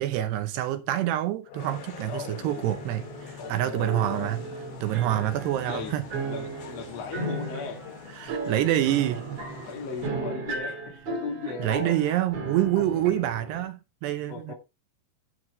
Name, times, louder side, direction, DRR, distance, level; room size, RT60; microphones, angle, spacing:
voice 1, 0.0-4.4 4.8-6.1 8.2-9.4 11.6-14.5, right 13 dB, 75° right, 2.7 m, -27 dB
sound 1, 1.5-12.4, left 7 dB, 90° left, 4.5 m, -51 dB
sound 2, 1.6-10.1, left 7 dB, 60° left, 3.6 m, -47 dB
voice 2, 2.0-2.7 3.4-4.4 5.0-5.3 5.6-5.9 6.3-7.8 8.5-8.7 9.6-10.8 11.1-12.1 12.8-13.1 14.3-14.5, left 5 dB, 45° left, 2.5 m, -37 dB
sound 3, 2.6-13.6, right 3 dB, 45° right, 3.7 m, -36 dB
11.5 x 6.2 x 4.4 m
omnidirectional pair, 5.4 m